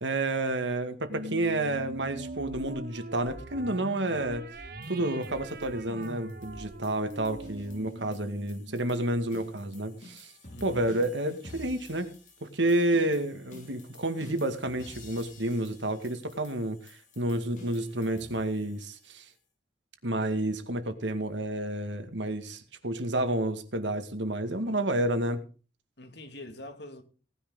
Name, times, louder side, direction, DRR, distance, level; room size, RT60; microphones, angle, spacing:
voice 1, 0.0-4.4 4.9-10.3 10.6-12.1 12.4-16.8 17.2-19.3 20.0-25.4, right 1 dB, 90° right, 2.2 m, -30 dB
sound 1, 1.1-9.8, right 1 dB, 55° right, 1.3 m, -42 dB
sound 2, 4.8-19.4, left 2 dB, 45° left, 5.9 m, -52 dB
voice 2, 10.5-10.8 24.6-24.8 26.0-27.0, left 1 dB, 70° left, 2.5 m, -44 dB
18.5 x 10.0 x 4.0 m
head